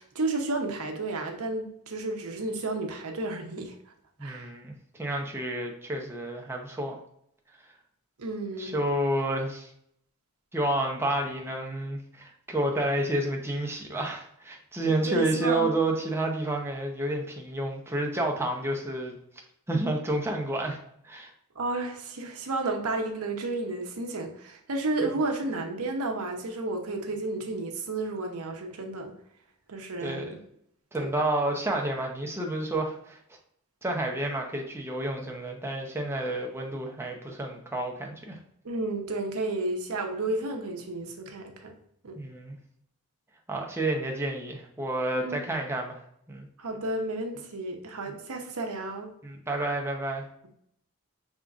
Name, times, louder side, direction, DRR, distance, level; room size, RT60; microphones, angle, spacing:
voice 1, 0.0-3.7 4.2-4.5 8.2-8.7 14.8-15.7 21.5-29.1 29.7-30.4 31.0-31.1 38.6-41.7 42.0-42.2 45.1-45.4 46.6-49.1, right 2 dB, 70° right, 3 dB, 0.8 m, -32 dB
voice 2, 4.2-7.0 8.6-9.7 10.5-19.2 19.7-20.8 21.0-21.3 30.0-30.3 30.9-33.2 33.8-38.4 42.1-42.6 43.5-46.0 46.3-46.5 48.1-48.2 49.2-50.3, right 1 dB, 10° right, 0 dB, 0.7 m, -30 dB
5.3 x 3.6 x 2.4 m, 0.71 s
head